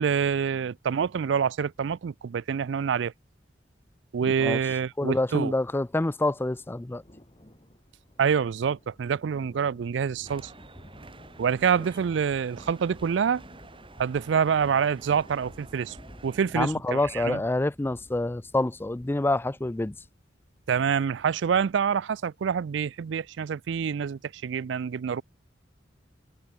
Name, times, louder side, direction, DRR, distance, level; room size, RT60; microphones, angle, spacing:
voice 1, 0.0-3.1 4.1-5.5 8.2-10.5 11.4-13.4 14.0-16.0 16.2-17.4 20.7-25.2, right 7 dB, 70° right, 0.4 m, -26 dB
voice 2, 4.2-4.6 5.0-7.0 16.5-20.0, left 2 dB, 10° left, 0.4 m, -27 dB
sound 1, 6.3-20.1, equal, 30° left, 4.2 m, -53 dB
sound 2, 10.3-16.4, right 2 dB, 30° right, 6.7 m, -50 dB
head